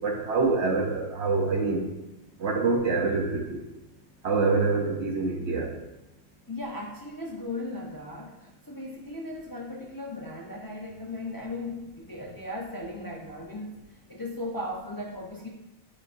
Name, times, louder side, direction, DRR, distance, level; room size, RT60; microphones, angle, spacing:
voice 1, 0.0-1.9 2.4-3.6 4.2-5.7, right 4 dB, 60° right, 2 dB, 1.1 m, -25 dB
voice 2, 6.5-13.8 14.1-15.5, left 2 dB, 20° left, -2 dB, 0.7 m, -37 dB
9.7 x 5.1 x 2.6 m, 0.99 s
omnidirectional pair, 1.4 m